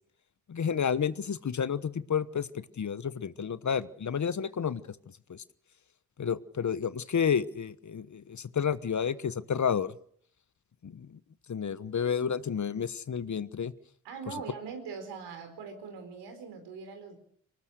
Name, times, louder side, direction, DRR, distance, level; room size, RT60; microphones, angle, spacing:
voice 1, 0.5-4.8 5.3-5.4 6.2-9.9 10.8-11.2 11.5-13.7, left 7 dB, 45° left, 15 dB, 1.2 m, -30 dB
voice 2, 14.0-17.2, right 5 dB, 85° right, 5 dB, 4.5 m, -41 dB
24.5 x 19.5 x 6.5 m, 0.63 s
hypercardioid pair, 40°, 40 cm